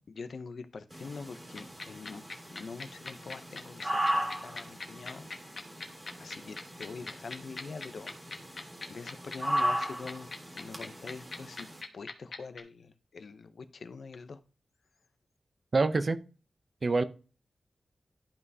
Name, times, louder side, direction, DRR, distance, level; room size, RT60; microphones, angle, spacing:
voice 1, 0.2-2.2 2.5-5.3 5.7-8.1 8.5-11.7 11.9-14.4, left 4 dB, 65° left, 0.6 m, -45 dB
sound 1, 0.9-11.8, equal, 20° right, 1.9 m, -37 dB
sound 2, 1.6-12.6, left 3 dB, 45° left, 0.9 m, -40 dB
voice 2, 15.7-16.2 16.8-17.0, right 3 dB, 40° right, 0.5 m, -25 dB
12.0 x 5.5 x 2.7 m
wide cardioid pair, 165°, 0 cm